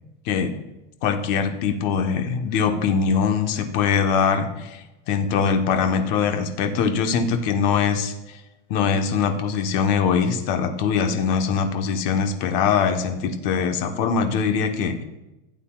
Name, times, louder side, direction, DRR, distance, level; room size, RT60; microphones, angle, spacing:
voice 1, 1.0-8.4 8.7-15.0, left 6 dB, 45° left, 5 dB, 1.2 m, -22 dB
15.5 x 8.2 x 2.4 m, 0.98 s
supercardioid pair, 160°, 31 cm